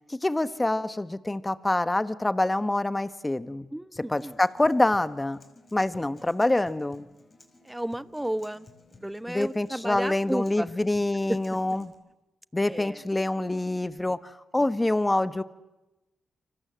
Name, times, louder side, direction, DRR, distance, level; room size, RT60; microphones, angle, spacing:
voice 1, 0.1-3.7 4.1-5.4 5.7-7.1 9.3-11.9 12.5-15.4, left 2 dB, 20° left, 12 dB, 1.6 m, -26 dB
voice 2, 3.7-4.4 7.6-8.7 9.0-10.7 12.7-13.0, right 1 dB, 10° right, 14 dB, 1.1 m, -33 dB
Acoustic guitar, 3.9-11.9, left 2 dB, 35° left, 5.4 m, -56 dB
29.5 x 25.5 x 7.7 m, 1.0 s
supercardioid pair, 50°, 0 cm